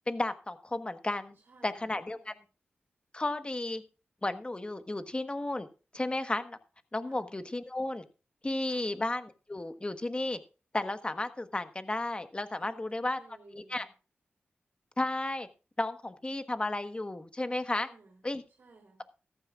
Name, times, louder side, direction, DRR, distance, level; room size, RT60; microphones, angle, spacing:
voice 1, 0.1-1.3 1.6-2.3 3.1-3.8 4.2-5.7 5.9-6.6 6.9-8.0 8.4-10.4 10.7-13.2 13.5-13.9 15.0-15.5 15.8-17.9 18.2-18.4, left 2 dB, 25° left, 9 dB, 1.3 m, -33 dB
voice 2, 1.3-2.4 7.0-7.3 8.6-8.9 12.6-13.9 17.7-18.2 18.6-19.0, right 3 dB, 60° right, 0 dB, 3.4 m, -58 dB
14.5 x 14.0 x 2.5 m, 0.34 s
cardioid pair, 65°, 4 cm